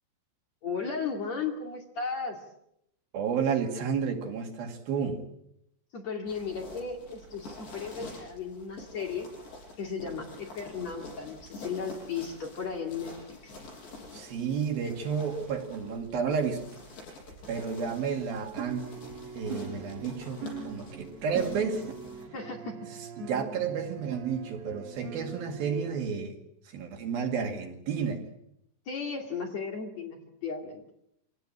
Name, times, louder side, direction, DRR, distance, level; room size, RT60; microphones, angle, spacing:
voice 1, 0.6-2.4 5.9-9.3 9.8-13.1 13.4-13.6 22.3-22.9 28.9-30.8, left 5 dB, 45° left, 3.2 m, -35 dB
voice 2, 3.1-5.3 14.1-16.6 17.5-18.9 19.4-21.9 23.2-26.4 26.7-28.2, right 6 dB, 60° right, 3.9 m, -31 dB
sound 1, 6.3-22.2, left 2 dB, 85° left, 10.5 m, -47 dB
sound 2, 18.6-26.0, right 4 dB, 85° right, 5.3 m, -42 dB
26.0 x 18.0 x 8.8 m
omnidirectional pair, 4.9 m